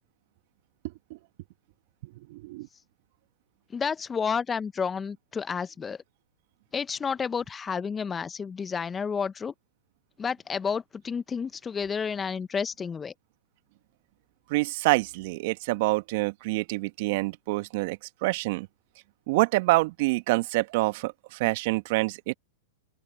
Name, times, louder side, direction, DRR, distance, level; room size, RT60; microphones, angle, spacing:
voice 1, 2.3-2.7 14.5-18.7 19.3-22.3, right 22 dB, 55° right, 1.6 m, -26 dB
voice 2, 3.7-6.0 6.7-9.5 10.2-13.1, left 6 dB, 20° left, 0.9 m, -30 dB
open air
hypercardioid pair, 100°, 0 cm